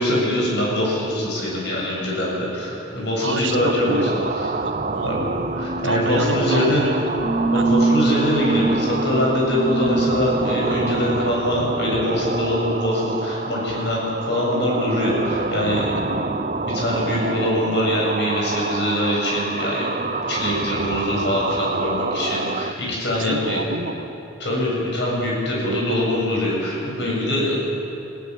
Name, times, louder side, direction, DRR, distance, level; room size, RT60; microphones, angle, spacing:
voice 1, 0.0-4.1 4.3-4.5 5.0-5.2 5.6-6.8 7.5-16.2 16.6-23.6 24.4-27.5, left 1 dB, 60° left, -3 dB, 7.7 m, -23 dB
voice 2, 3.2-5.1 5.8-7.2 7.5-7.8 23.2-24.1 25.6-26.2, right 2 dB, 80° right, 6 dB, 1.7 m, -29 dB
sound 1, 3.5-22.7, right 3 dB, 40° right, 0.7 m, -28 dB
sound 2, 5.2-11.2, right 3 dB, 35° left, 5.9 m, -24 dB
29.5 x 17.0 x 7.7 m, 2.9 s
head